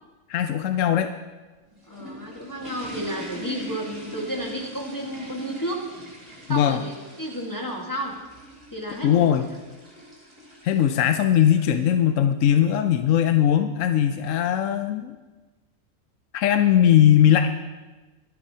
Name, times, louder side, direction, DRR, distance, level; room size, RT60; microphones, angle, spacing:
voice 1, 0.3-1.1 6.5-6.8 9.0-9.5 10.6-15.1 16.3-17.6, left 10 dB, 70° left, 7 dB, 0.9 m, -19 dB
sound 1, 1.5-11.8, right 1 dB, 25° right, 3.5 m, -42 dB
voice 2, 1.9-5.8 6.5-6.9 7.2-8.1 8.7-9.3, equal, 15° left, -2 dB, 1.5 m, -32 dB
24.0 x 8.7 x 2.8 m, 1.2 s
omnidirectional pair, 1.5 m